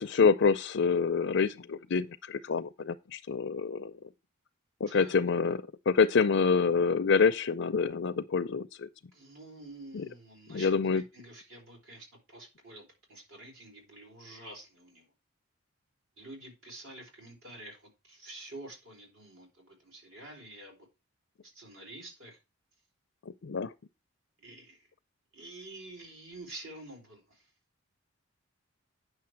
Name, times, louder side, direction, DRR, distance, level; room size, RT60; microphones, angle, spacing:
voice 1, 0.0-3.9 4.8-8.9 9.9-10.1 10.5-11.0 23.4-23.7, left 5 dB, 55° left, 0.4 m, -27 dB
voice 2, 4.9-5.2 9.1-15.1 16.2-20.9 21.4-22.4 24.4-24.9 25.3-27.5, right 2 dB, 70° right, 4.2 m, -48 dB
9.7 x 6.4 x 4.5 m
head